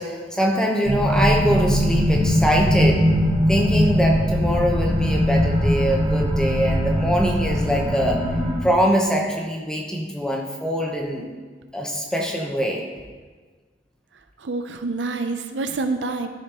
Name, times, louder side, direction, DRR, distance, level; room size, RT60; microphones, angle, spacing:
voice 1, 0.0-3.0 3.5-8.2 8.6-11.3 11.7-12.8, equal, 5° left, 0 dB, 0.8 m, -23 dB
sound 1, 0.8-8.6, equal, 30° right, 1.3 m, -21 dB
voice 2, 14.4-16.3, right 3 dB, 75° right, 7 dB, 0.5 m, -27 dB
12.5 x 5.0 x 2.9 m, 1.4 s
head